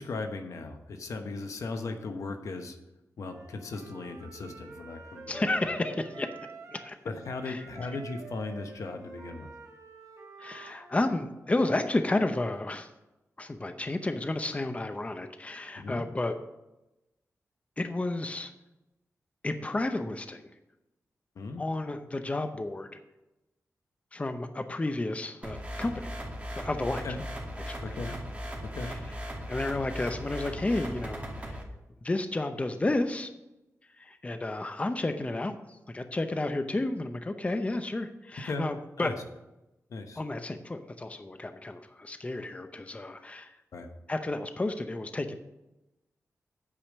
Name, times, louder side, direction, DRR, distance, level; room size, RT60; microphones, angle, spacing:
voice 1, 0.0-2.8 3.2-5.4 7.0-9.5 15.8-16.1 21.4-21.6 27.0-27.2 27.8-28.2 28.7-28.9 38.4-38.7 39.0-39.1 39.9-40.2 43.7-43.9, left 3 dB, 80° left, 5 dB, 1.1 m, -37 dB
Wind instrument woodwind instrument, 3.2-6.9 7.2-11.2, right 4 dB, 85° right, 2.5 m, -48 dB
voice 2, 5.3-6.3 6.7-7.0 7.4-7.6 10.4-12.9 13.4-16.3 17.8-18.5 19.4-20.5 21.6-22.9 24.1-26.1 26.6-27.0 27.6-28.0 28.9-29.0 29.5-31.6 32.0-33.3 34.0-39.1 40.2-43.6 44.1-45.4, left 2 dB, 25° left, 8 dB, 0.7 m, -31 dB
sound 1, 25.4-31.6, equal, 25° right, 2.3 m, -38 dB
8.8 x 5.0 x 7.3 m, 0.96 s
wide cardioid pair, 85°, 5 cm